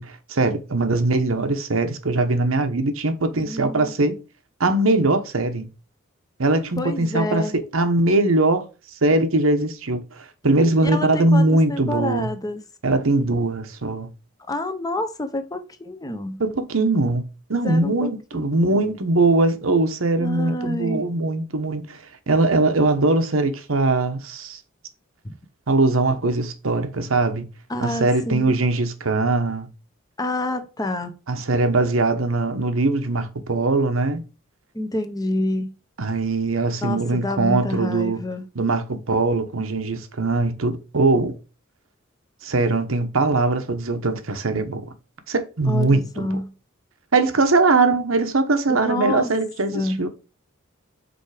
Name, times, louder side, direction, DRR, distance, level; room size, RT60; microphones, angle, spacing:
voice 1, 0.0-4.2 4.6-5.7 6.4-12.3 12.8-14.1 16.4-17.2 17.5-24.6 25.7-27.4 27.8-29.7 31.3-34.2 36.0-38.2 38.5-41.3 42.4-44.9 45.3-46.4 47.1-50.1, right 2 dB, 90° right, 1.1 m, -21 dB
voice 2, 3.4-3.9 6.8-7.5 10.8-12.6 14.5-16.4 17.5-19.0 20.2-21.0 25.2-25.3 27.7-28.6 30.2-31.1 34.7-35.7 36.8-38.4 45.7-46.5 48.7-49.3 49.7-50.1, left 1 dB, 20° left, 0.8 m, -28 dB
5.2 x 4.3 x 4.9 m
head